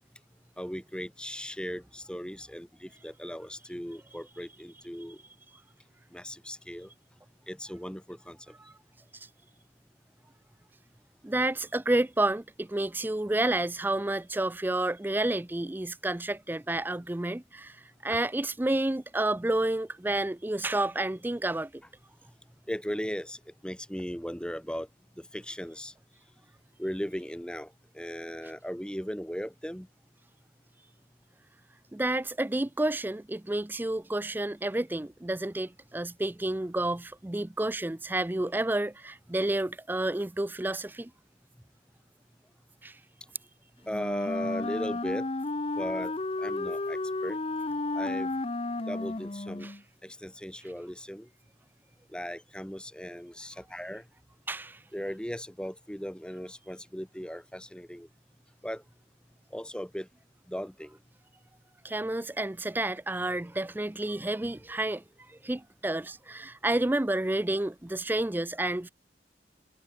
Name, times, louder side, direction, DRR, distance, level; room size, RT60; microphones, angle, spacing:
voice 1, 0.6-5.2 6.1-6.9 7.5-8.5 18.1-18.2 22.7-24.9 25.2-25.9 26.8-29.9 43.9-45.3 45.8-47.4 47.9-48.3 48.9-49.7 50.0-51.3 52.1-54.0 54.9-58.1 58.6-58.8 59.5-60.1 60.5-61.0, equal, 5° left, 1.6 m, -37 dB
voice 2, 11.2-21.8 31.9-41.1 42.8-43.0 49.6-49.7 54.5-54.8 61.8-65.0 65.3-68.9, right 1 dB, 10° right, 0.4 m, -30 dB
Wind instrument woodwind instrument, 43.9-49.8, left 2 dB, 30° left, 0.7 m, -32 dB
head